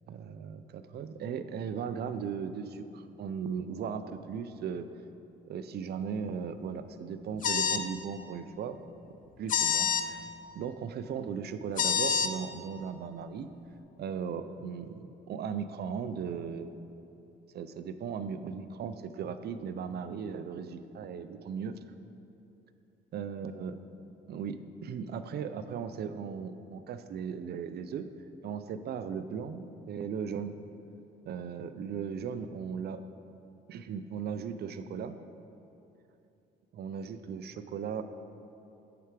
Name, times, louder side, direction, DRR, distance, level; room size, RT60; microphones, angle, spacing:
voice 1, 0.1-4.9 5.5-8.8 9.4-10.3 10.5-13.5 14.0-16.7 17.5-21.8 23.1-23.8 24.3-28.1 28.4-30.6 31.3-33.0 33.7-35.2 36.7-38.0, right 6 dB, 55° right, 11 dB, 0.4 m, -37 dB
sound 1, 7.4-7.9 9.5-10.0 11.8-12.3, left 7 dB, 45° left, 0.4 m, -27 dB
7.8 x 5.8 x 3.3 m, 2.8 s
cardioid pair, 90°, 20 cm